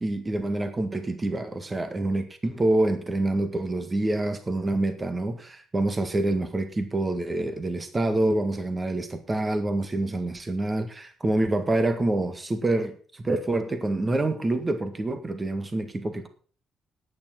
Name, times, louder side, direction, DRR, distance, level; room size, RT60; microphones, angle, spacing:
voice 1, 0.0-16.3, right 2 dB, 25° right, 9 dB, 1.8 m, -26 dB
10.5 x 9.4 x 5.9 m, 0.41 s
cardioid pair, 90°, 0 cm